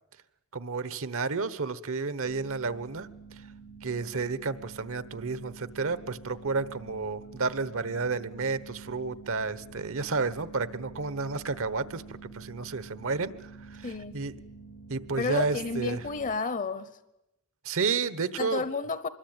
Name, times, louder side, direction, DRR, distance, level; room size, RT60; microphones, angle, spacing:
voice 1, 0.5-3.1 3.8-14.3 14.9-16.1 17.6-18.6, right 4 dB, 65° right, 1.2 m, -31 dB
sound 1, 2.2-16.4, right 4 dB, 70° left, 1.2 m, -48 dB
voice 2, 13.8-14.1 15.2-16.9 18.4-19.1, left 4 dB, 35° left, 0.8 m, -31 dB
25.5 x 21.5 x 9.0 m
head